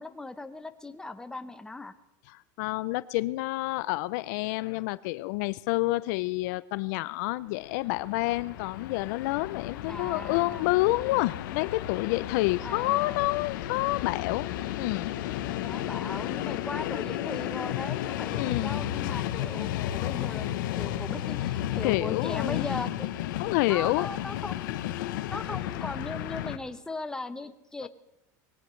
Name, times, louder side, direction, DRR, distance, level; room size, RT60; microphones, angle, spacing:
voice 1, 0.0-1.9 9.9-10.7 12.6-13.2 15.6-20.5 20.8-23.1 23.7-24.8 25.3-27.9, left 2 dB, 5° left, 0.8 m, -38 dB
voice 2, 2.3-14.5 14.8-15.2 18.4-18.8 19.5-21.5 21.8-22.7 23.4-24.1 25.2-25.3 27.8-27.9, left 20 dB, 65° left, 0.4 m, -29 dB
Train, 7.6-26.6, left 12 dB, 80° left, 0.9 m, -33 dB
21.0 x 17.5 x 3.2 m
supercardioid pair, 145°, 10 cm